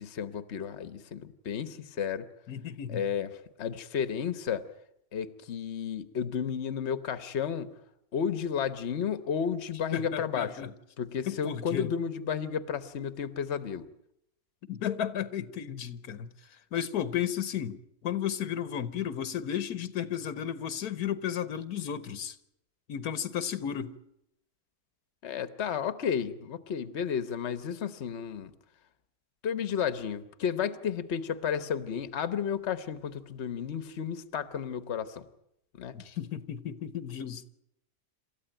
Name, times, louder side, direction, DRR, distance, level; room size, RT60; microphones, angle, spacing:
voice 1, 0.0-2.3 2.9-3.3 3.6-4.6 5.1-7.7 8.1-10.6 11.0-13.9 25.2-28.5 29.4-35.2 35.8-36.0, left 7 dB, 50° left, 1.3 m, -32 dB
voice 2, 2.5-3.0 9.9-10.7 11.3-11.9 14.7-16.3 16.7-22.4 22.9-24.0 35.9-37.5, left 9 dB, 85° left, 1.6 m, -33 dB
27.5 x 14.0 x 8.9 m
omnidirectional pair, 1.6 m